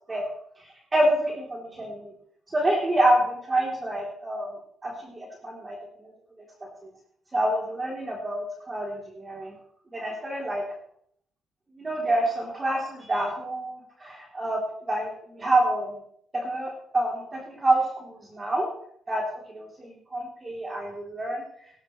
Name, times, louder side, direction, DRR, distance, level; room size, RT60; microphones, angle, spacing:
voice 1, 0.9-2.1 2.5-4.5 4.8-5.7 6.6-6.7 7.3-9.5 9.9-10.6 11.8-15.9 16.4-18.7 19.1-19.2 19.5-21.4, right 1 dB, 25° right, -2 dB, 3.2 m, -27 dB
17.0 x 12.0 x 3.2 m, 0.67 s
cardioid pair, 90°, 0 cm